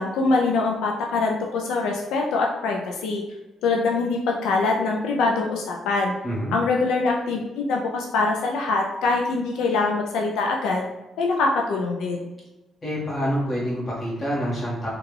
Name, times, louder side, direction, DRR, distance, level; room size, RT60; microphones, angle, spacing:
voice 1, 0.0-3.2 3.6-6.1 6.5-10.9 11.2-12.3, left 3 dB, 85° left, 0 dB, 0.4 m, -23 dB
voice 2, 6.2-6.5 12.8-14.9, equal, 30° left, -6 dB, 1.5 m, -27 dB
3.5 x 2.3 x 3.2 m, 1.0 s
cardioid pair, 90°, 0 cm